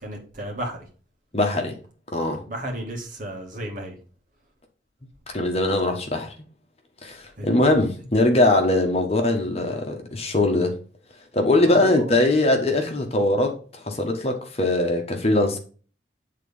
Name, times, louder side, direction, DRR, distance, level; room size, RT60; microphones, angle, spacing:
voice 1, 0.0-0.8 2.5-4.0 7.4-7.8 11.7-12.2, right 1 dB, 45° right, 2.2 m, -34 dB
voice 2, 1.3-1.8 2.1-2.4 5.3-6.3 7.0-10.8 11.3-13.6 13.9-15.6, left 2 dB, 35° left, 1.3 m, -21 dB
9.2 x 3.8 x 5.4 m
head